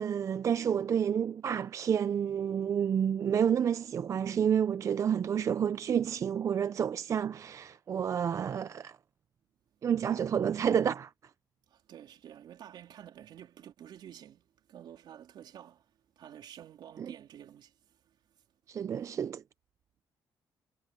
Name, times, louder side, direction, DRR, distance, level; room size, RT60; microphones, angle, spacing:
voice 1, 0.0-9.0 9.8-11.1 17.0-17.1 18.7-19.4, right 8 dB, 40° right, 0.4 m, -29 dB
voice 2, 11.7-15.9 16.2-18.2, right 10 dB, 70° right, 3.6 m, -50 dB
cardioid pair, 140°, 8 cm